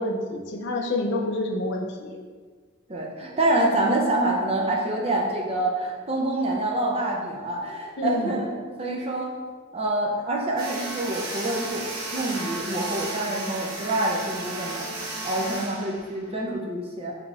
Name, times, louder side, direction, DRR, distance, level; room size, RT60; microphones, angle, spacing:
voice 1, 0.0-2.2 8.0-8.4, left 2 dB, 55° left, 1 dB, 0.4 m, -28 dB
voice 2, 2.9-9.3 9.7-11.8 12.1-17.1, right 1 dB, 30° right, -1 dB, 0.5 m, -26 dB
sound 1, 10.6-16.5, right 2 dB, 85° right, 1.1 m, -34 dB
5.8 x 2.9 x 2.4 m, 1.5 s
head